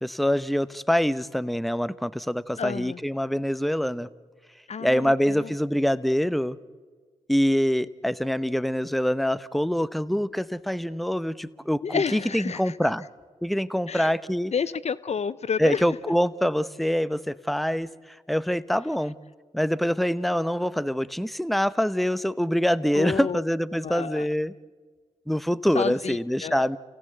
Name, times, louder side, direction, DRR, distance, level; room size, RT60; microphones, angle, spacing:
voice 1, 0.0-4.1 4.8-6.6 7.3-13.0 13.4-14.5 15.6-17.9 18.3-19.1 19.5-24.5 25.3-26.8, equal, ahead, 16 dB, 0.9 m, -25 dB
voice 2, 2.6-3.0 4.7-5.5 11.8-12.8 13.9-14.1 14.5-15.8 22.9-23.4 23.8-24.3 25.7-26.7, left 6 dB, 50° left, 17 dB, 0.7 m, -30 dB
29.0 x 17.5 x 8.1 m, 1.5 s
hypercardioid pair, 40°, 14 cm